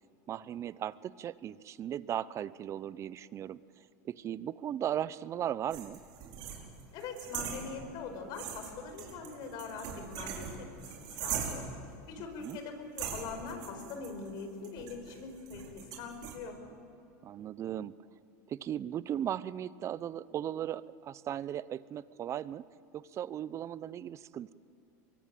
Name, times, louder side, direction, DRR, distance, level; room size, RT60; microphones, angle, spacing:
voice 1, 0.3-3.6 4.0-6.0 12.4-12.6 17.2-18.0 18.5-22.6 22.9-24.5, right 10 dB, 30° right, 19 dB, 0.7 m, -37 dB
sound 1, 5.7-8.1 8.3-11.8 12.4-12.6 13.0-16.3, right 8 dB, 55° right, 5.2 m, -41 dB
voice 2, 6.9-11.6 12.1-16.6, left 5 dB, 55° left, 6 dB, 5.2 m, -43 dB
23.5 x 23.0 x 9.1 m, 2.8 s
supercardioid pair, 120°, 9 cm